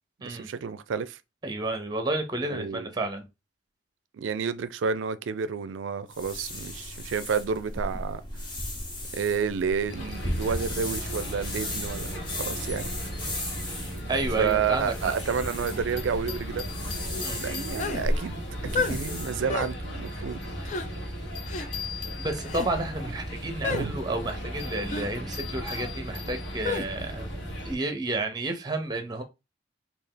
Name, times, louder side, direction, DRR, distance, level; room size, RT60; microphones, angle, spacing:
voice 1, 0.2-1.2 2.4-2.9 4.1-8.2 9.1-12.9 14.4-16.7 17.4-18.4 18.7-20.4 23.7-23.9, right 6 dB, 85° right, 0.4 m, -30 dB
voice 2, 1.4-3.3 14.1-15.2 17.2-17.7 22.2-27.3 27.6-29.2, right 2 dB, 20° right, 0.7 m, -31 dB
sound 1, 6.1-19.4, left 1 dB, 25° left, 0.8 m, -36 dB
sound 2, 9.9-27.7, equal, 70° left, 1.2 m, -36 dB
sound 3, 17.8-18.1 18.7-19.0 19.5-19.7 20.6-20.9 21.5-21.7 22.4-22.7 23.6-23.9 24.9-25.1 26.6-26.9, left 4 dB, 40° left, 0.4 m, -30 dB
3.3 x 2.4 x 3.7 m
head